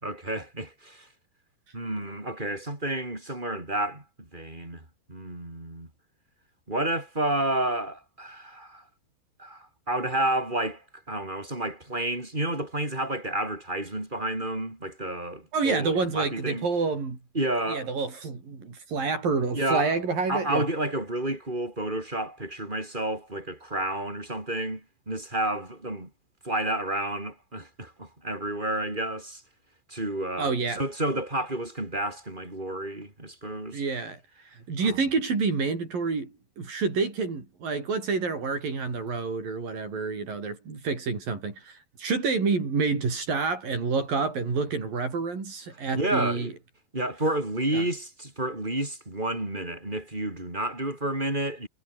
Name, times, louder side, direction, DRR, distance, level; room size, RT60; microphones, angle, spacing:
voice 1, 0.0-1.1 1.7-5.9 6.7-8.8 9.4-16.7 17.3-17.9 19.5-20.0 20.3-26.1 26.4-29.4 29.9-33.8 34.8-35.0 45.9-46.5 46.9-51.7, right 1 dB, 10° right, 5.6 m, -30 dB
voice 2, 15.5-17.2 17.7-20.7 30.4-30.8 33.7-34.2 34.7-46.5 47.7-47.9, right 4 dB, 70° right, 7.8 m, -28 dB
omnidirectional pair, 4.2 m